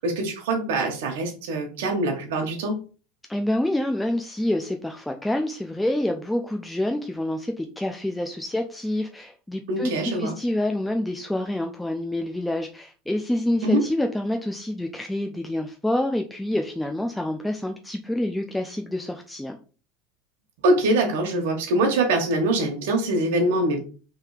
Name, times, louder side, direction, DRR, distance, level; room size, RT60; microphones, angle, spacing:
voice 1, 0.0-2.8 9.7-10.3 13.6-13.8 20.6-23.8, right 2 dB, 90° right, 2 dB, 1.1 m, -23 dB
voice 2, 3.3-19.6, left 1 dB, 5° left, 3 dB, 0.4 m, -27 dB
3.4 x 3.3 x 4.7 m, 0.36 s
supercardioid pair, 150°, 0 cm